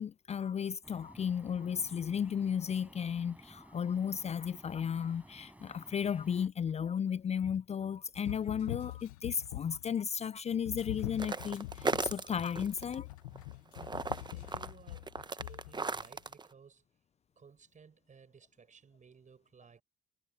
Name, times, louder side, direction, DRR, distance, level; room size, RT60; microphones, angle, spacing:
voice 1, 0.0-13.1, left 7 dB, 40° left, 0.4 m, -34 dB
sound 1, 0.8-6.5, right 1 dB, 10° right, 4.9 m, -55 dB
sound 2, 8.1-9.9 10.6-16.1, left 18 dB, 90° left, 0.7 m, -44 dB
sound 3, 11.2-12.9 13.3-16.5, right 4 dB, 25° right, 1.0 m, -36 dB
voice 2, 14.2-16.8 17.4-19.8, right 6 dB, 45° right, 6.3 m, -58 dB
hypercardioid pair, 45°, 18 cm